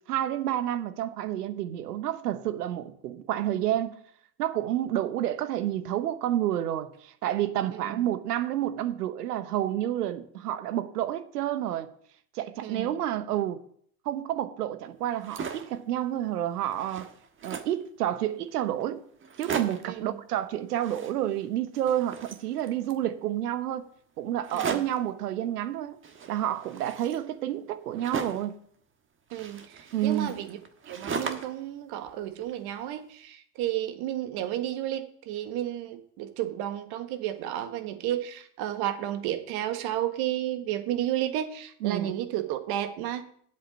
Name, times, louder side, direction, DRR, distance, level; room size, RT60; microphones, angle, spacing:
voice 1, 0.1-4.0 4.4-11.9 12.3-13.6 14.0-17.1 17.4-19.0 19.4-23.9 24.2-26.0 26.3-28.6 29.9-30.4 41.8-42.1, right 12 dB, 75° right, 1.1 m, -29 dB
voice 2, 7.7-8.1 12.6-13.0 19.8-20.2 24.5-24.8 29.3-30.6 30.9-43.2, right 12 dB, 55° right, 1.5 m, -32 dB
sound 1, 15.1-15.8 16.3-16.4 16.6-17.8 18.5-18.6 18.8-18.9 19.2-20.0 20.7-21.5 21.7-23.0 24.4-25.1 26.0-28.6 29.3-31.6 32.0-32.9, right 5 dB, 25° right, 1.4 m, -38 dB
8.1 x 8.0 x 7.4 m
hypercardioid pair, 80°, 47 cm